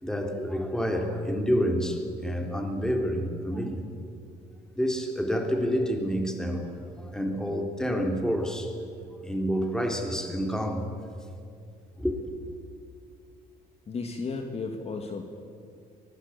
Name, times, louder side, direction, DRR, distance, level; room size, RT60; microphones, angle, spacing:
voice 1, 0.0-3.8 4.7-6.7 7.0-8.8 9.2-11.1 12.0-12.3, equal, 5° left, 3 dB, 3.4 m, -28 dB
voice 2, 13.9-15.2, left 4 dB, 35° left, 5 dB, 2.1 m, -34 dB
23.5 x 19.5 x 8.5 m, 2.4 s
cardioid pair, 110°, 17 cm